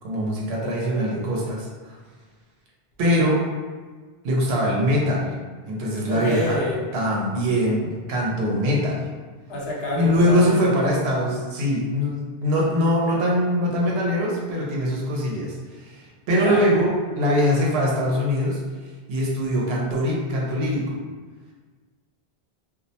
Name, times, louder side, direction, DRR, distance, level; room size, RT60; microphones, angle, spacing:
voice 1, 0.0-2.0 3.0-3.4 4.2-5.3 5.6-6.6 6.9-9.0 9.9-16.9 17.2-18.6 19.1-21.0, equal, 80° right, -3 dB, 0.9 m, -22 dB
voice 2, 6.1-6.8 9.5-10.9 16.4-16.6, left 1 dB, 75° left, -4 dB, 0.9 m, -27 dB
2.3 x 2.1 x 2.7 m, 1.4 s
omnidirectional pair, 1.0 m